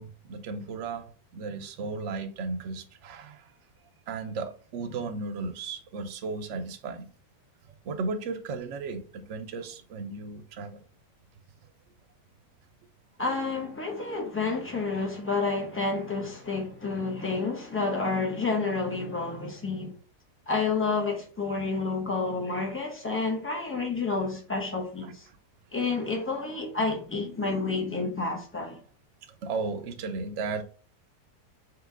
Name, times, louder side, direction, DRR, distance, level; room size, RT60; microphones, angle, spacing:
voice 1, 0.0-3.5 4.1-7.1 7.8-10.8 29.4-30.6, right 4 dB, 65° right, 0.8 m, -35 dB
voice 2, 13.2-20.0 20.5-25.3 25.7-28.8, left 4 dB, 15° left, 0.4 m, -29 dB
3.8 x 3.0 x 3.7 m
omnidirectional pair, 1.7 m